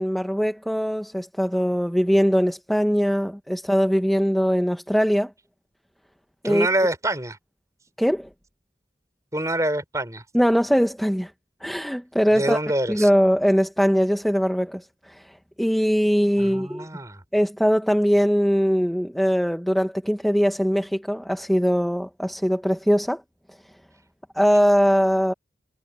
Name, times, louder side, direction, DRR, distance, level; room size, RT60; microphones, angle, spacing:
voice 1, 0.0-5.3 6.4-6.7 8.0-8.3 10.3-11.3 11.6-12.6 12.9-16.9 17.3-23.2 24.3-25.3, equal, ahead, 1.1 m, -21 dB
voice 2, 6.4-7.4 9.3-10.2 12.4-13.1 16.4-17.2, right 1 dB, 20° right, 5.2 m, -25 dB
head